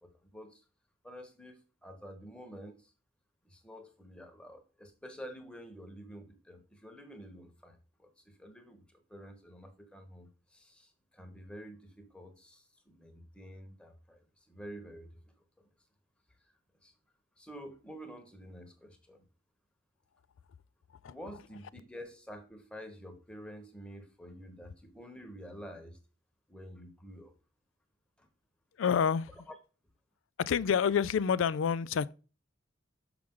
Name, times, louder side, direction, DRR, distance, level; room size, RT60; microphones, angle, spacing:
voice 1, 0.0-0.6 1.0-2.9 3.4-15.7 16.8-16.9 17.4-19.2 21.1-26.0 26.5-27.3 28.2-28.3 29.5-29.6, equal, 5° left, 1.1 m, -49 dB
voice 2, 28.8-29.3 30.4-32.1, left 7 dB, 75° left, 0.4 m, -28 dB
6.3 x 5.8 x 3.7 m
head